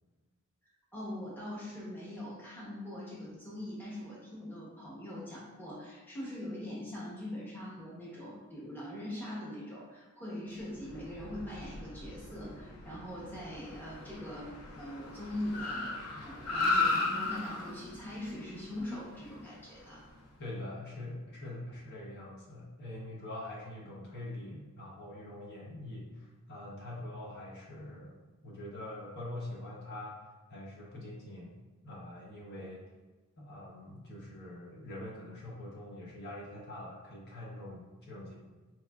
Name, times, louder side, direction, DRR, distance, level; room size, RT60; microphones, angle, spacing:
voice 1, 0.9-15.9 16.2-20.0, left 1 dB, 10° left, -7 dB, 0.8 m, -42 dB
Car, 10.7-20.2, left 3 dB, 80° left, 0.6 m, -36 dB
voice 2, 20.4-30.2 30.5-31.5 31.8-32.8 33.4-38.3, left 1 dB, 50° left, -4 dB, 0.8 m, -44 dB
4.2 x 3.1 x 2.3 m, 1.3 s
head